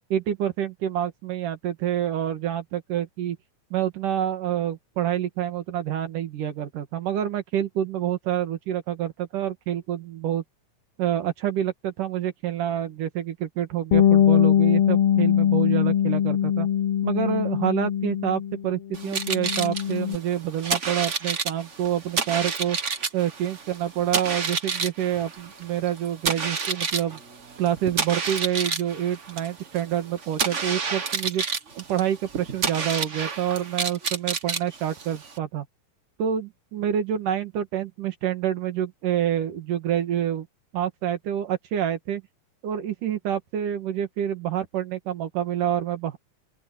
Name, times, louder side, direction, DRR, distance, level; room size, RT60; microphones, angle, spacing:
voice 1, 0.1-3.4 3.7-10.4 11.0-16.7 17.0-22.8 23.1-27.2 27.6-31.4 31.8-35.7 36.2-40.5 40.7-42.2 42.6-46.2, right 10 dB, 80° right, 3.5 m, -27 dB
Bass guitar, 13.9-18.6 18.9-20.2, left 9 dB, 85° left, 1.2 m, -21 dB
sound 1, 18.9-35.4, right 5 dB, 45° right, 1.0 m, -30 dB
open air
omnidirectional pair, 3.6 m